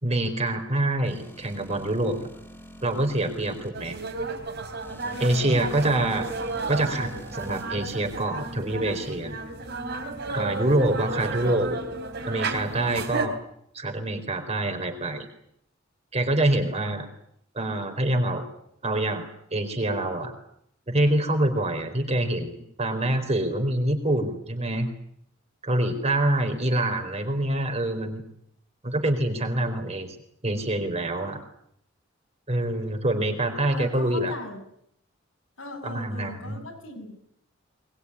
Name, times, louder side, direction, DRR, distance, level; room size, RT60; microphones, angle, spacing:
voice 1, 0.0-2.2 2.8-4.0 5.2-6.3 6.7-9.4 10.3-11.8 12.3-13.4 13.7-15.3 16.1-17.1 17.5-18.4 18.8-20.3 20.9-22.5 22.8-24.9 25.6-28.2 28.8-30.2 30.4-31.4 32.5-34.3 35.8-36.6, right 1 dB, 30° right, 5 dB, 4.3 m, -26 dB
sound 1, 1.0-3.7 4.8-7.6, left 1 dB, 10° left, 3.7 m, -45 dB
sound 2, 3.7-13.3, right 3 dB, 55° right, 3.7 m, -33 dB
voice 2, 5.1-5.8 33.7-34.6 35.6-37.2, left 1 dB, 85° left, 2 dB, 7.8 m, -39 dB
22.0 x 21.0 x 9.8 m, 0.71 s
head